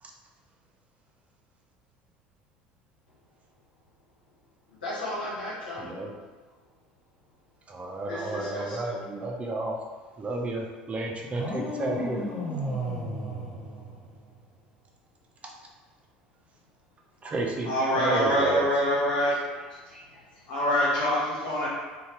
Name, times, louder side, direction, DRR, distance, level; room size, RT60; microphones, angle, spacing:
voice 1, 4.7-5.9 8.1-9.0 19.8-20.5, left 1 dB, 85° left, -9 dB, 1.1 m, -37 dB
voice 2, 5.8-6.2 7.7-9.8 10.2-12.2 15.4-15.5 17.2-17.7 17.9-18.6, right 2 dB, 25° right, 0 dB, 0.5 m, -31 dB
sound 1, 11.3-14.4, equal, ahead, 1.3 m, -33 dB
voice 3, 17.6-19.3 20.5-21.7, equal, 65° left, -7 dB, 1.3 m, -24 dB
2.7 x 2.3 x 3.4 m, 1.3 s
hypercardioid pair, 70°, 5 cm